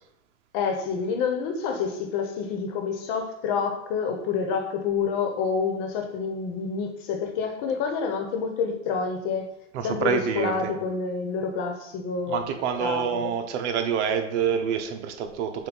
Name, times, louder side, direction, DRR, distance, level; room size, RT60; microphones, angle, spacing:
voice 1, 0.5-9.5 9.8-12.5 12.8-13.3, left 5 dB, 45° left, 4 dB, 1.3 m, -28 dB
voice 2, 9.7-10.7 12.3-15.7, right 7 dB, 65° right, 7 dB, 1.0 m, -27 dB
7.5 x 2.7 x 5.4 m, 0.80 s
supercardioid pair, 135°, 38 cm